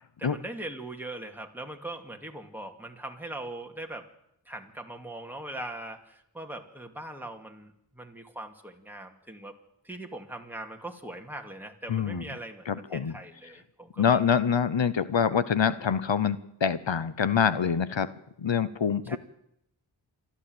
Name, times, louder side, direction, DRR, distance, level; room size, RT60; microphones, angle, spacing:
voice 1, 0.2-4.0 4.5-9.5 9.8-14.2 19.0-19.2, right 1 dB, 5° right, 3 dB, 2.4 m, -41 dB
voice 2, 11.9-12.2 12.7-13.1 14.0-18.1 18.4-19.2, left 7 dB, 70° left, 14 dB, 0.9 m, -25 dB
28.0 x 12.0 x 8.0 m, 0.79 s
wide cardioid pair, 45°, 46 cm